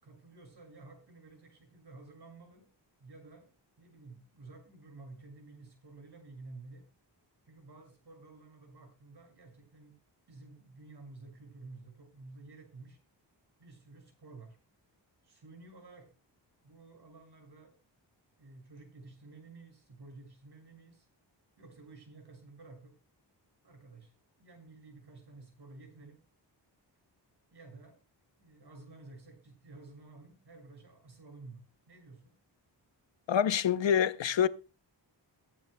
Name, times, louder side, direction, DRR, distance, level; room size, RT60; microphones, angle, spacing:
voice 1, 0.0-2.7 3.0-3.5 3.8-6.8 7.4-10.0 10.3-13.0 13.6-14.6 15.2-16.1 16.6-17.7 18.4-21.1 21.6-22.9 23.6-24.1 24.4-26.2 27.5-28.0 28.4-32.3, right 3 dB, 60° right, 6.7 m, -52 dB
voice 2, 33.3-34.5, left 8 dB, 75° left, 0.8 m, -26 dB
22.0 x 9.3 x 2.2 m
wide cardioid pair, 145°, 45 cm